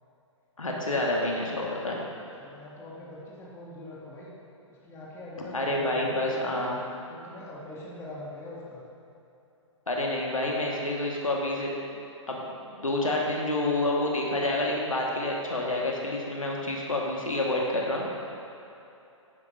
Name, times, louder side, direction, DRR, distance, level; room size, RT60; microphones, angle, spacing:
voice 1, 0.6-2.0 5.5-6.8 9.9-11.7 12.3-12.4 12.7-18.1, left 1 dB, 90° left, -2 dB, 1.5 m, -28 dB
voice 2, 2.4-4.3 4.7-6.7 7.1-8.8, left 1 dB, 15° left, -6 dB, 1.9 m, -43 dB
11.5 x 9.6 x 2.6 m, 2.9 s
figure-of-eight pair, 130°, 17 cm